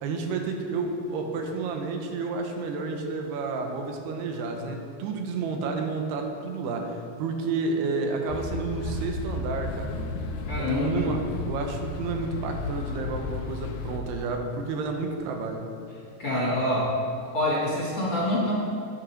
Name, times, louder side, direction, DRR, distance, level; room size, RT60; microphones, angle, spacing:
voice 1, 0.0-9.9 10.6-15.7, right 4 dB, 80° right, 3 dB, 3.1 m, -30 dB
sound 1, 8.3-14.0, left 3 dB, 75° left, 2.7 m, -33 dB
voice 2, 10.4-11.0 16.2-16.9 17.3-18.5, left 1 dB, 30° left, -6 dB, 3.0 m, -26 dB
12.0 x 10.0 x 5.1 m, 2.5 s
omnidirectional pair, 4.6 m